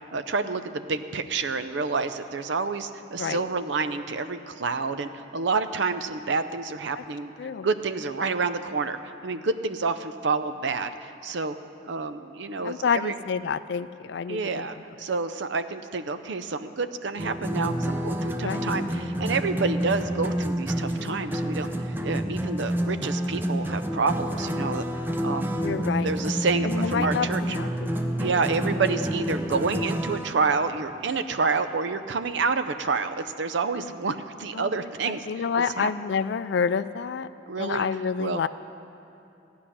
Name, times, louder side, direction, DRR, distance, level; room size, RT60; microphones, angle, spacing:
voice 1, 0.1-7.3 7.6-11.6 11.9-13.1 14.3-21.7 22.0-24.8 25.2-25.5 25.8-27.6 28.2-35.9 37.5-37.9 38.2-38.4, right 4 dB, 70° right, 11 dB, 0.6 m, -28 dB
voice 2, 12.6-14.6 18.4-18.7 25.6-26.1 26.6-27.9 34.5-34.7 35.1-37.3 37.6-38.5, left 6 dB, 60° left, 14 dB, 0.3 m, -28 dB
sound 1, 17.2-30.3, equal, 10° right, 0.5 m, -28 dB
15.0 x 5.7 x 10.0 m, 2.7 s
head